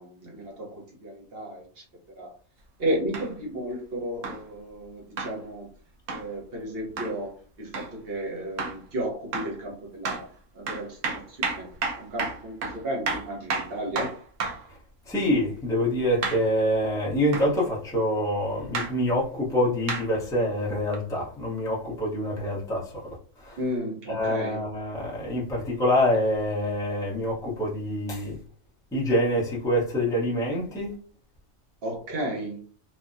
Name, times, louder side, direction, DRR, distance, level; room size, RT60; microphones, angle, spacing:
voice 1, 0.0-1.8 2.2-2.3 2.8-5.7 6.1-10.2 10.5-11.7 12.0-14.1 23.6-24.6 31.8-32.6, right 1 dB, 50° right, 1.0 m, -33 dB
sound 1, 3.1-3.3 4.2-4.4 5.2-5.4 6.1-6.3 7.0-7.1 7.7-7.9 8.6-8.8 9.3-9.6 10.0-10.3 10.7-14.7 16.2-16.5 17.3-17.5 18.7-18.9 19.9-20.1 20.9-21.0, right 4 dB, 70° right, 1.0 m, -31 dB
voice 2, 15.1-23.2 23.4-23.6 24.1-28.4 28.9-30.9, left 1 dB, 5° left, 0.6 m, -26 dB
3.3 x 2.1 x 2.5 m
omnidirectional pair, 1.4 m